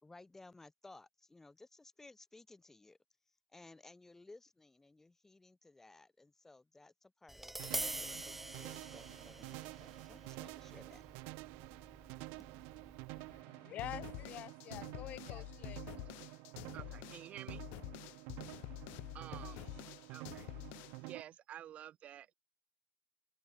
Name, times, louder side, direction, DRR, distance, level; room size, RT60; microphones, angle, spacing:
voice 1, 0.0-3.0 3.5-11.0, left 2 dB, 10° left, 3.6 m, -59 dB
Tap, 7.3-13.4, right 1 dB, 5° right, 0.6 m, -46 dB
sound 1, 7.6-21.2, right 32 dB, 80° right, 0.7 m, -50 dB
voice 2, 13.1-15.9, left 13 dB, 50° left, 3.4 m, -47 dB
sound 2, 13.8-21.1, left 29 dB, 80° left, 0.9 m, -48 dB
voice 3, 16.7-17.6 19.1-19.6 20.1-20.5 21.0-22.3, right 11 dB, 45° right, 0.9 m, -51 dB
cardioid pair, 125°, 3 cm